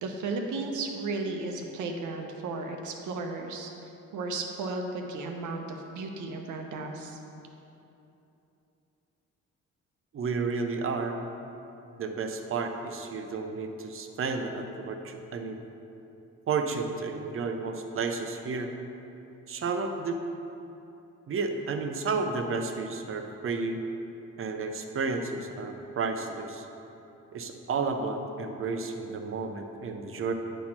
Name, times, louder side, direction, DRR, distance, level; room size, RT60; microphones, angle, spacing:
voice 1, 0.0-3.7 4.1-7.2, right 3 dB, 80° right, 3 dB, 0.9 m, -34 dB
voice 2, 10.1-11.2 12.0-15.6 16.5-18.7 19.5-20.2 21.3-23.8 24.4-26.7 27.3-30.3, right 4 dB, 45° right, 5 dB, 0.7 m, -32 dB
9.1 x 4.3 x 4.3 m, 2.9 s
cardioid pair, 90°, 30 cm